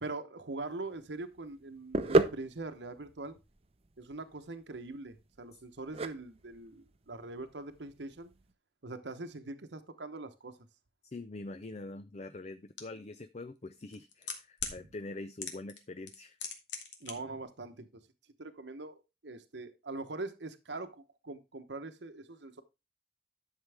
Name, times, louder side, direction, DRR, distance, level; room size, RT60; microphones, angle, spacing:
voice 1, 0.0-3.4 4.0-8.3 8.8-10.6 17.0-18.0 18.4-22.6, right 2 dB, 75° right, 1.0 m, -42 dB
sound 1, 0.6-8.5, right 2 dB, 35° right, 0.7 m, -34 dB
voice 2, 11.1-16.4, left 2 dB, 35° left, 0.5 m, -44 dB
sound 2, 12.8-12.9 13.8-14.8 15.4-15.8 16.1-17.1 17.4-17.5, left 6 dB, 80° left, 2.1 m, -38 dB
11.0 x 6.6 x 3.4 m
head